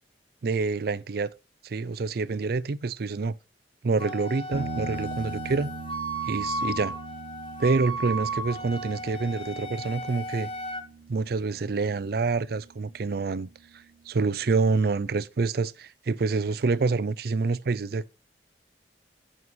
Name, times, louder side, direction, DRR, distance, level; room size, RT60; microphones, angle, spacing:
voice 1, 0.4-1.3 1.6-3.3 3.8-5.7 6.2-6.9 7.6-10.5 11.1-18.1, right 4 dB, 60° right, 0.5 m, -27 dB
Wind instrument woodwind instrument, 4.0-10.8, right 1 dB, 30° left, 1.3 m, -34 dB
sound 1, 4.5-14.0, right 4 dB, 90° right, 0.8 m, -42 dB
15.5 x 5.5 x 3.1 m
head